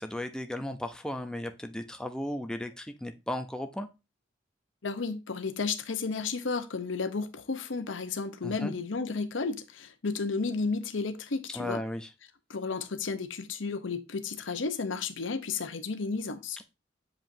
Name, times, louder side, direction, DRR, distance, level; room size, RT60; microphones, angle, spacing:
voice 1, 0.0-3.9 8.4-8.7 11.5-12.1 16.6-16.7, left 1 dB, 5° left, 0.5 m, -35 dB
voice 2, 4.8-11.8 12.5-16.6, left 4 dB, 85° left, 0.8 m, -33 dB
7.4 x 5.0 x 2.7 m
head